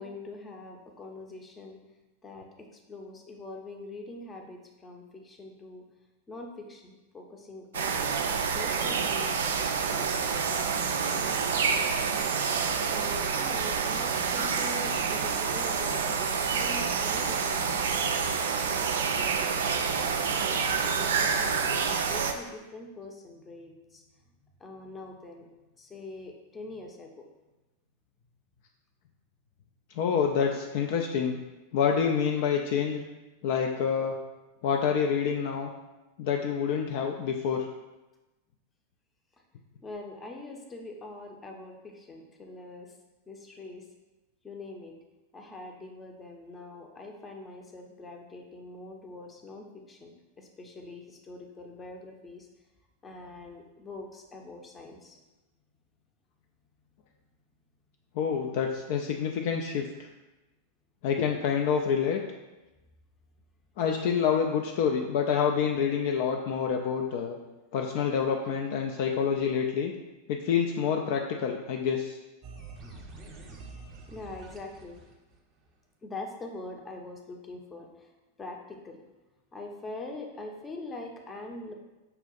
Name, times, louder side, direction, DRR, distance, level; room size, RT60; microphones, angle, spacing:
voice 1, 0.0-1.8 2.2-5.9 6.3-8.1 8.5-11.9 12.9-19.9 20.5-24.0 24.6-25.5 25.8-27.3 39.8-42.9 43.3-43.9 44.4-45.0 45.3-52.5 53.0-55.2 72.9-73.0 74.1-75.0 76.0-79.0 79.5-81.7, left 2 dB, 15° left, 2 dB, 0.6 m, -44 dB
sound 1, 7.7-22.3, right 6 dB, 65° right, 0.3 m, -28 dB
voice 2, 30.0-31.4 31.7-33.0 33.4-34.2 34.6-35.7 36.2-37.7 58.2-59.9 61.0-62.2 63.8-67.4 67.7-69.9 70.3-72.2, left 7 dB, 50° left, 2 dB, 0.3 m, -27 dB
sound 2, 72.4-75.7, right 3 dB, 35° right, 0.8 m, -46 dB
5.5 x 2.4 x 3.9 m, 1.1 s
figure-of-eight pair, 90°, 0 cm